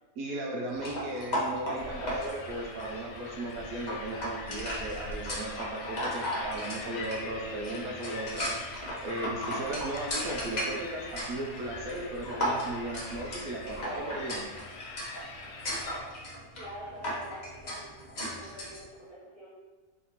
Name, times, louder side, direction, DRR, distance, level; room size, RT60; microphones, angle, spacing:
voice 1, 0.2-14.4, right 1 dB, 70° right, -1 dB, 1.0 m, -36 dB
sound 1, 0.7-18.8, equal, 40° left, 0.6 m, -37 dB
sound 2, 1.8-16.0, left 3 dB, 85° left, 0.5 m, -43 dB
voice 2, 16.5-17.9 18.1-19.5, equal, 25° right, -8 dB, 1.1 m, -45 dB
4.0 x 2.7 x 4.4 m, 1.3 s
omnidirectional pair, 1.8 m